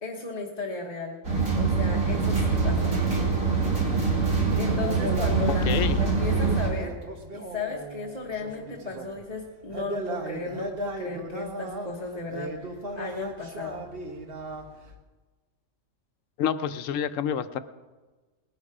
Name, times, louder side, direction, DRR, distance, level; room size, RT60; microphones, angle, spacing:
voice 1, 0.0-1.2 1.6-3.0 4.5-6.9 7.3-13.8, left 3 dB, 35° left, -1 dB, 1.3 m, -35 dB
sound 1, 1.2-6.7, right 4 dB, 90° right, 3.0 m, -24 dB
sound 2, 4.6-9.2 9.6-14.9, right 1 dB, 50° right, 1.5 m, -37 dB
voice 2, 5.5-6.0 16.4-17.6, left 8 dB, 80° left, 11 dB, 1.1 m, -28 dB
19.5 x 10.5 x 4.9 m, 1.2 s
omnidirectional pair, 1.3 m